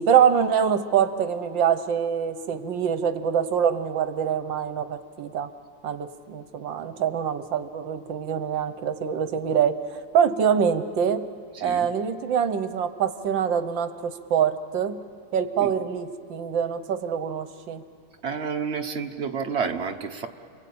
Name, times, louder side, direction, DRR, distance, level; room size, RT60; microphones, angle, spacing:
voice 1, 0.0-5.5 5.8-11.2 11.6-15.0 15.3-17.8, right 8 dB, 75° right, 10 dB, 1.6 m, -24 dB
voice 2, 18.2-20.3, right 6 dB, 40° right, 5 dB, 1.2 m, -29 dB
29.5 x 21.5 x 8.6 m, 2.4 s
omnidirectional pair, 2.1 m